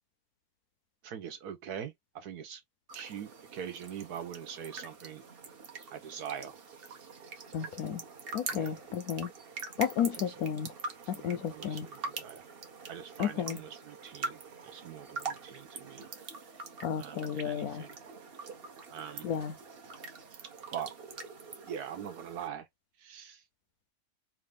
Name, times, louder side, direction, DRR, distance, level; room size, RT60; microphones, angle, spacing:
voice 1, 1.0-2.6 2.9-5.2 5.9-6.6 8.5-8.7 10.2-10.3 11.1-12.5 12.9-16.1 17.0-18.0 18.9-19.3 20.7-20.9 21.7-22.7 23.0-23.4, right 8 dB, 75° right, 1.4 m, -43 dB
sound 1, 2.9-22.5, right 4 dB, 45° right, 0.9 m, -44 dB
voice 2, 7.5-8.0 8.3-9.3 9.8-10.7 11.1-11.9 13.2-13.6 16.8-17.9 19.2-19.6, left 8 dB, 75° left, 1.0 m, -32 dB
3.3 x 2.6 x 3.4 m
omnidirectional pair, 1.7 m